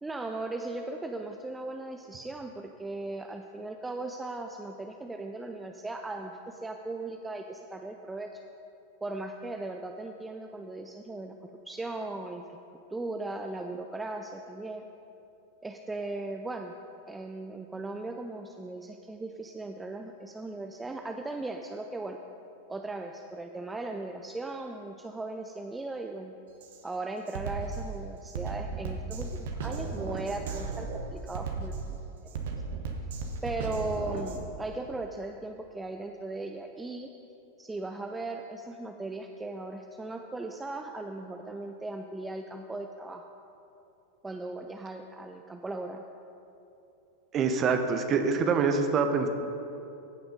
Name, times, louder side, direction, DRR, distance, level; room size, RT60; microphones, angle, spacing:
voice 1, 0.0-8.4 9.0-11.3 11.7-12.6 12.9-14.8 15.6-16.7 17.1-22.2 22.7-26.4 26.8-32.2 33.4-37.1 37.6-43.2 44.2-46.0, right 2 dB, 10° right, 4 dB, 0.5 m, -38 dB
Drum kit, 26.6-26.8 27.3-34.5, right 4 dB, 55° right, 1.1 m, -35 dB
voice 2, 47.3-49.3, right 5 dB, 30° right, 7 dB, 0.9 m, -25 dB
15.0 x 5.9 x 5.2 m, 2.8 s
figure-of-eight pair, 90°, 0 cm